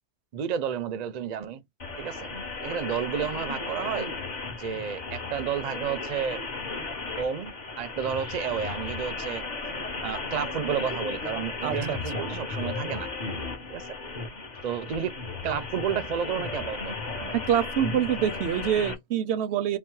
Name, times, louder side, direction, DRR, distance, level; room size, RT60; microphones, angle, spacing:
voice 1, 0.3-1.6 2.0-2.3 2.6-4.1 4.6-6.4 7.2-9.4 10.0-13.1 13.7-14.0 14.6-15.1 15.4-16.9 17.2-17.3, right 8 dB, 50° right, 0.5 m, -31 dB
sound 1, 1.8-18.9, left 3 dB, 45° left, 1.1 m, -35 dB
voice 2, 11.6-12.0 17.3-19.8, right 9 dB, 80° right, 0.8 m, -26 dB
4.1 x 2.0 x 4.5 m
omnidirectional pair, 1.1 m